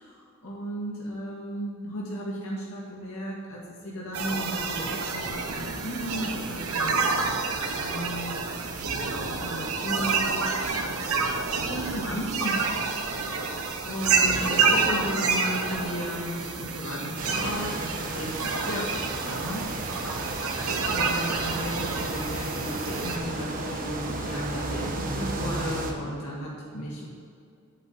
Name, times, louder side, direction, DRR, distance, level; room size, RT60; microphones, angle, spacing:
voice 1, 0.0-3.6 3.8-7.0 7.8-8.4 9.4-10.5 11.7-12.7 13.0-19.6 20.9-27.1, equal, 75° left, -4 dB, 2.0 m, -34 dB
sound 1, 4.1-23.2, right 4 dB, 85° right, 1.2 m, -28 dB
sound 2, 17.2-25.9, right 2 dB, 40° right, 1.3 m, -34 dB
8.6 x 8.2 x 8.3 m, 2.3 s
head